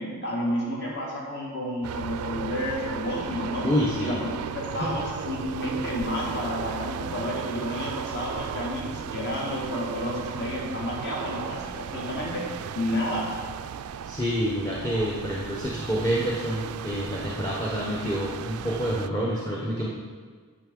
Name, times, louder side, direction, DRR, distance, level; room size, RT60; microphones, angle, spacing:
voice 1, 0.0-3.7 4.0-12.5 12.7-13.3, left 1 dB, 50° left, -4 dB, 1.9 m, -31 dB
sound 1, 1.8-19.1, right 8 dB, 85° right, 0.3 m, -36 dB
voice 2, 3.6-4.2 4.7-5.0 14.0-19.9, equal, 15° left, -5 dB, 0.9 m, -28 dB
9.6 x 5.8 x 3.7 m, 1.6 s
head